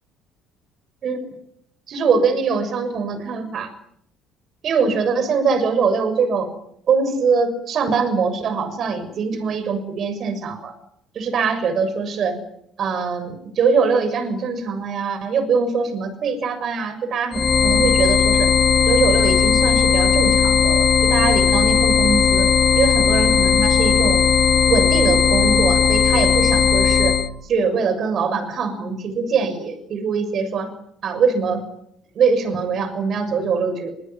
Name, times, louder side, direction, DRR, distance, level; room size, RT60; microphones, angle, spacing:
voice 1, 1.9-3.7 4.6-6.5 6.9-10.7 11.1-12.4 12.8-18.5 18.9-24.2 24.7-27.2 27.4-30.7 31.0-31.6 32.1-33.9, right 5 dB, 50° right, 9 dB, 6.8 m, -22 dB
sound 1, 17.3-27.3, left 7 dB, 35° left, 2.6 m, -17 dB
24.0 x 24.0 x 9.3 m, 0.74 s
hypercardioid pair, 60°, 0 cm